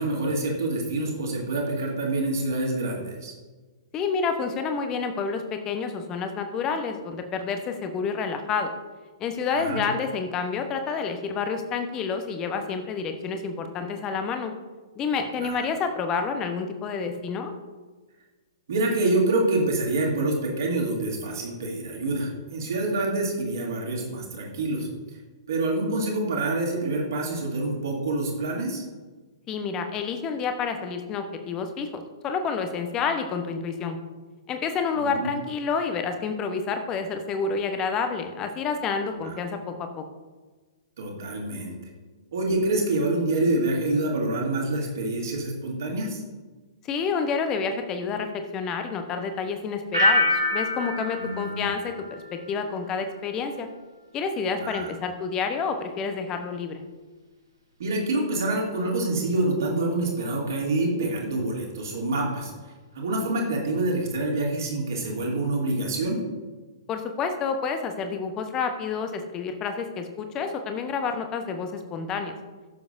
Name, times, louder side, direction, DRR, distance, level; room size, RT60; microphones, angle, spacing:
voice 1, 0.0-3.3 9.5-9.8 15.4-15.6 18.7-24.9 25.5-28.8 34.9-35.3 39.2-39.4 41.0-41.7 42.3-46.2 51.2-51.7 54.6-54.9 57.8-62.5 62.9-66.2, right 2 dB, 55° right, -1 dB, 2.7 m, -26 dB
voice 2, 3.9-8.7 9.2-14.5 15.0-17.5 29.5-34.0 34.5-39.7 46.9-53.7 54.1-56.8 66.9-72.4, left 5 dB, 25° left, 6 dB, 1.0 m, -29 dB
sound 1, 49.9-52.8 53.1-53.6, left 1 dB, 85° right, 2.1 m, -26 dB
16.5 x 7.1 x 2.6 m, 1.3 s
figure-of-eight pair, 115°, 2 cm